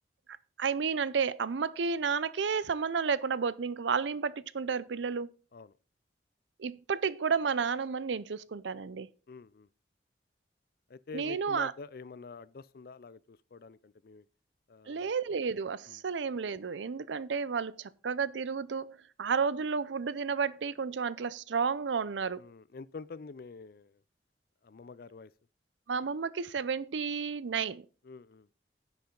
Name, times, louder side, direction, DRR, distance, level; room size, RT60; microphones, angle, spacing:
voice 1, 0.3-5.3 6.6-9.1 11.1-11.7 14.9-22.4 25.9-27.9, right 5 dB, 90° right, 0.5 m, -32 dB
voice 2, 9.3-9.7 10.9-14.3 14.7-15.1 15.9-16.0 22.4-24.0 24.6-25.3 28.0-28.5, left 4 dB, 55° left, 0.4 m, -47 dB
10.0 x 8.0 x 3.8 m
head